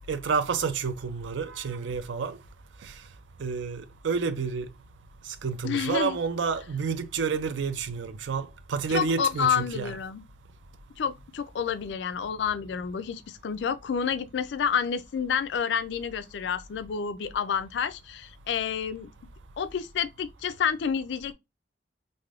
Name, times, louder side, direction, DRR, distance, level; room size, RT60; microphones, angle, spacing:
voice 1, 0.1-2.4 2.8-2.9 3.4-4.7 5.3-9.9, right 5 dB, 85° right, 0.4 m, -29 dB
voice 2, 5.6-6.2 8.9-10.2 11.0-19.1 19.6-21.3, left 7 dB, 70° left, 0.3 m, -29 dB
3.4 x 2.6 x 2.4 m
head